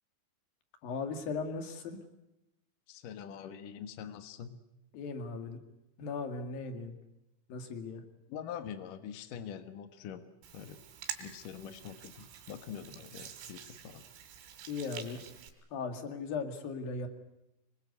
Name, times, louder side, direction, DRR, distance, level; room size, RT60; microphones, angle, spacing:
voice 1, 0.8-2.0 4.9-5.6 6.0-6.9 7.5-8.0 14.7-15.2 15.7-17.1, left 4 dB, 55° left, 7 dB, 3.4 m, -37 dB
voice 2, 2.9-4.6 8.3-10.3 10.5-10.8 11.2-14.0, left 8 dB, 80° left, 9 dB, 1.9 m, -44 dB
Hands, 10.4-15.5, right 10 dB, 90° right, 5.4 m, -47 dB
25.5 x 22.0 x 8.2 m, 0.90 s
omnidirectional pair, 5.9 m